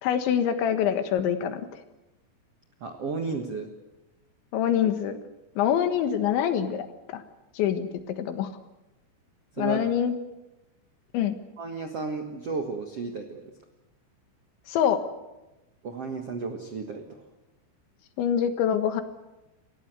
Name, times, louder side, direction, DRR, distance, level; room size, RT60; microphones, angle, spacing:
voice 1, 0.0-1.7 4.5-5.2 5.6-7.2 7.6-8.5 9.6-10.2 11.1-11.4 14.7-15.0 18.2-19.0, left 9 dB, 75° left, 9 dB, 3.7 m, -25 dB
voice 2, 2.8-3.7 9.6-9.8 11.6-13.5 15.8-17.2, right 4 dB, 75° right, 5 dB, 1.4 m, -33 dB
30.0 x 15.5 x 8.1 m, 0.99 s
omnidirectional pair, 5.5 m